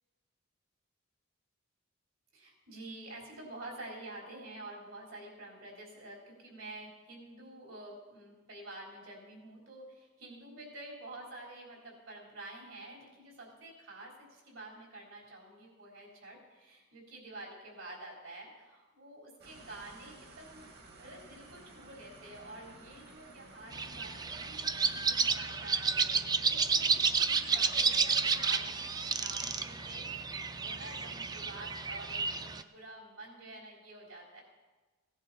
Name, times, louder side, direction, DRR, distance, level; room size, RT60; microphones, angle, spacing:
voice 1, 2.3-34.4, right 2 dB, 75° right, -2 dB, 4.0 m, -49 dB
sound 1, 19.4-25.4, right 2 dB, 50° right, 1.4 m, -54 dB
sound 2, 23.7-32.6, right 5 dB, 20° right, 0.4 m, -31 dB
16.5 x 10.5 x 4.2 m, 1.3 s
head